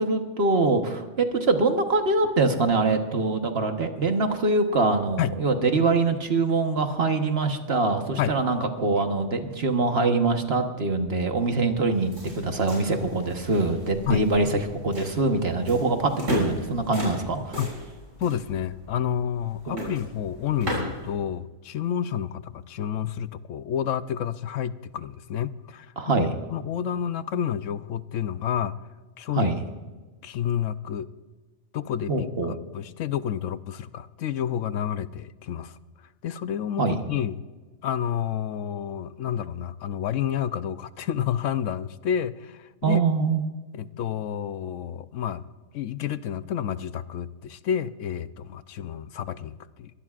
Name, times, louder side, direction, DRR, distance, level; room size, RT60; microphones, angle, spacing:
voice 1, 0.0-17.5 19.7-19.9 26.0-26.3 29.3-29.6 32.1-32.5 36.8-37.0 42.8-43.4, right 3 dB, 55° right, 5 dB, 1.4 m, -24 dB
sound 1, 11.9-21.1, equal, 90° right, 7.0 m, -36 dB
voice 2, 18.2-25.9 26.2-26.3 26.5-28.8 29.2-29.5 30.2-31.1 31.7-32.1 32.7-35.8 36.2-37.4 37.8-43.0 43.7-45.4 45.7-49.9, left 9 dB, 85° left, 14 dB, 1.0 m, -29 dB
23.5 x 18.0 x 2.5 m, 1.3 s
omnidirectional pair, 1.3 m